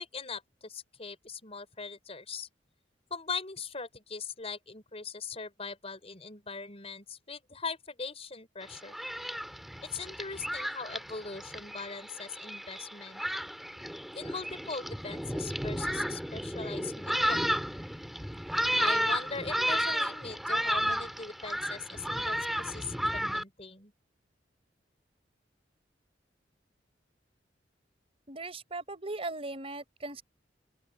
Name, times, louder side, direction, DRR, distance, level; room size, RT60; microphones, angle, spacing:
voice 1, 0.0-2.5 3.1-8.9 9.8-13.2 14.1-17.5 18.8-23.9, left 4 dB, 35° left, 5.4 m, -40 dB
Thunderstorm, 8.6-23.4, equal, ahead, 4.3 m, -33 dB
voice 2, 28.3-30.2, right 2 dB, 35° right, 4.7 m, -38 dB
open air
head